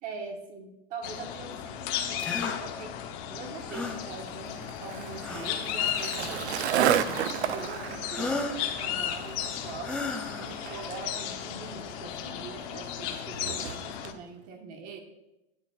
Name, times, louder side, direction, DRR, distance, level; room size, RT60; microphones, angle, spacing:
voice 1, 0.0-2.9 3.3-9.9 10.4-15.0, right 5 dB, 25° right, 4 dB, 1.3 m, -43 dB
sound 1, 1.0-14.1, left 10 dB, 35° left, 0.8 m, -35 dB
sound 2, 2.2-2.6 3.7-4.0 5.2-5.7 6.8-7.3 8.1-8.6 9.8-10.5, left 3 dB, 5° left, 0.5 m, -34 dB
Skateboard, 3.6-14.2, right 11 dB, 85° right, 0.6 m, -34 dB
13.0 x 10.0 x 2.4 m, 0.93 s
supercardioid pair, 165°, 32 cm